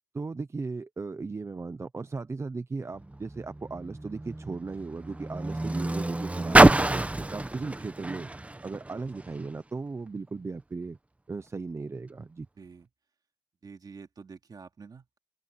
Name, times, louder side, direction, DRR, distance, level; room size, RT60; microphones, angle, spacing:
voice 1, 0.1-7.0 7.3-8.3 8.6-11.0 11.3-12.5, right 4 dB, 40° right, 0.7 m, -36 dB
Car, 2.9-9.5 10.3-10.4, right 2 dB, 20° right, 1.0 m, -26 dB
voice 2, 12.6-12.9 13.6-15.2, right 5 dB, 60° right, 3.0 m, -47 dB
open air
wide cardioid pair, 85°, 8 cm